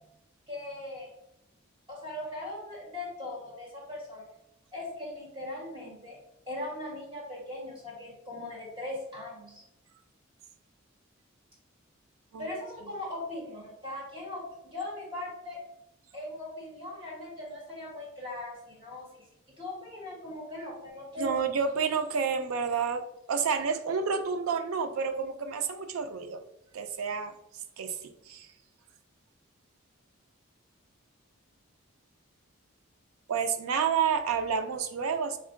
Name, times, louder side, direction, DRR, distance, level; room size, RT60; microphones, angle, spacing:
voice 1, 0.5-1.1 1.9-4.2 4.7-6.2 6.5-9.6 12.4-15.6 16.1-19.2 19.6-21.3, left 1 dB, 25° right, -4 dB, 1.2 m, -39 dB
voice 2, 21.2-26.4 26.7-27.3 27.8-28.5 33.3-35.4, right 6 dB, 90° right, 8 dB, 0.4 m, -29 dB
3.6 x 2.1 x 3.7 m, 0.84 s
head